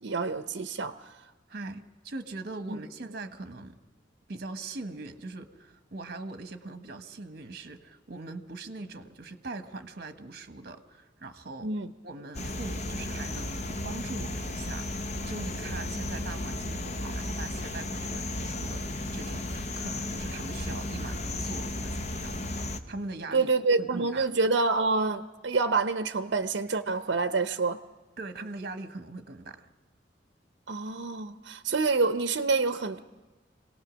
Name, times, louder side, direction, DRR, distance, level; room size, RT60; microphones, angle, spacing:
voice 1, 0.0-1.1 2.7-2.8 11.6-11.9 23.3-27.8 30.7-33.0, right 3 dB, 75° right, 9 dB, 0.7 m, -27 dB
voice 2, 1.5-3.8 4.3-11.7 12.0-22.4 22.9-23.5 23.8-24.3 28.2-29.7, right 3 dB, 55° right, 9 dB, 1.2 m, -41 dB
sound 1, 12.3-22.8, left 1 dB, 40° left, 1.0 m, -34 dB
26.0 x 18.0 x 6.3 m, 1.2 s
head